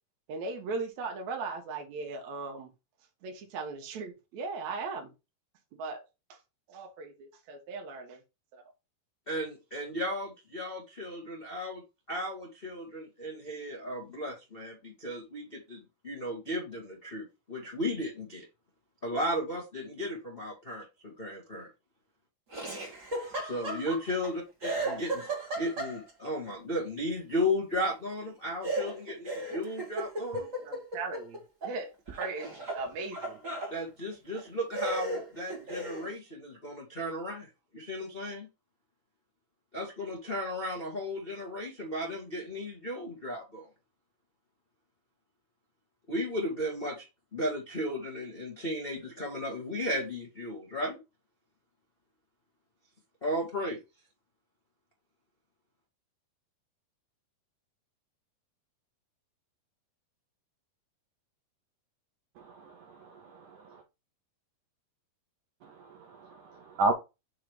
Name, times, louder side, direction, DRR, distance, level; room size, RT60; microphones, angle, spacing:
voice 1, 0.3-2.7 3.2-5.1 5.8-6.0 6.3-6.4 6.7-8.2 8.5-8.6 30.6-33.4, right 4 dB, 60° right, 2.0 m, -38 dB
voice 2, 9.3-11.8 12.1-18.4 19.0-21.7 23.4-30.5 33.7-38.5 39.7-43.7 46.1-51.0 53.2-53.8, left 1 dB, 75° left, 0.5 m, -35 dB
Laughter, 22.5-24.3 24.6-26.3 28.6-31.8 32.1-33.7 34.3-34.4 34.7-36.1, right 1 dB, 35° right, 1.3 m, -35 dB
voice 3, 62.4-63.8 65.6-66.9, right 2 dB, 80° right, 1.8 m, -34 dB
6.4 x 3.4 x 4.6 m
omnidirectional pair, 4.6 m